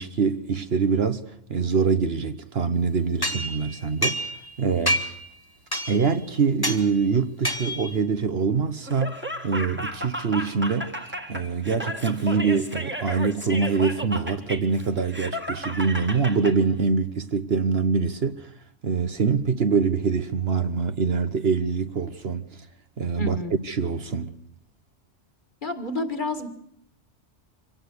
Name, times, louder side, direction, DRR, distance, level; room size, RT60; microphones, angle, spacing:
voice 1, 0.0-4.2 4.6-5.0 5.9-10.9 11.3-18.5 18.8-22.6 23.0-23.4 23.6-24.3, right 5 dB, 55° right, 1.2 m, -24 dB
sound 1, 3.2-4.5 4.9-5.3 5.7-6.1 6.6-6.9 7.4-8.0, equal, 20° left, 1.9 m, -27 dB
Laughter, 8.9-16.6, equal, 10° right, 1.7 m, -34 dB
voice 2, 23.2-23.5 25.6-26.5, left 2 dB, 40° left, 1.9 m, -29 dB
25.0 x 17.5 x 6.6 m
omnidirectional pair, 1.2 m